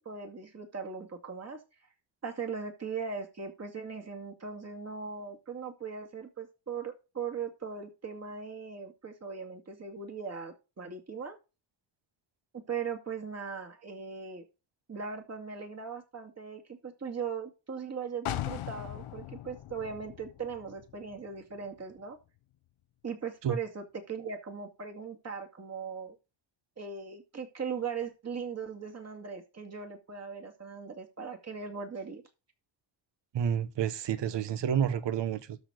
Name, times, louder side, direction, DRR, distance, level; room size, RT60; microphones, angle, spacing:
voice 1, 0.0-1.6 2.2-11.4 12.5-14.4 14.9-22.2 23.0-26.2 26.8-32.2, right 6 dB, 30° right, 2.3 m, -39 dB
sound 1, 18.3-22.0 22.4-22.5, left 13 dB, 75° left, 1.0 m, -40 dB
voice 2, 33.3-35.6, right 8 dB, 55° right, 1.1 m, -29 dB
13.0 x 4.3 x 6.4 m
wide cardioid pair, 150°, 50 cm